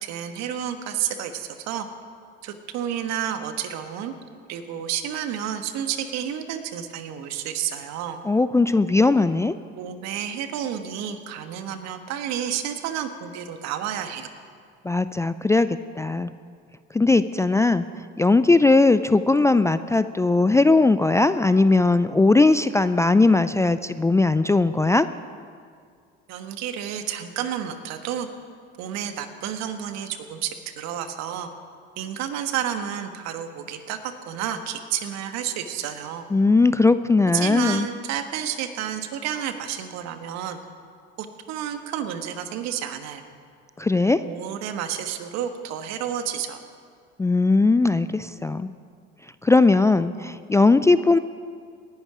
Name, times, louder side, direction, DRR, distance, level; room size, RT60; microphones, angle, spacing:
voice 1, 0.0-1.9 2.4-4.1 4.5-8.2 9.8-14.3 26.3-28.3 28.8-31.5 32.0-36.3 37.3-40.6 41.2-43.2 44.2-46.6, right 9 dB, 65° right, 8 dB, 1.4 m, -30 dB
voice 2, 8.2-9.5 14.8-16.3 16.9-25.1 36.3-37.9 43.8-44.2 47.2-48.7 49.4-51.2, left 3 dB, 10° left, 13 dB, 0.4 m, -19 dB
18.0 x 11.0 x 4.9 m, 2.2 s
hypercardioid pair, 75°, 29 cm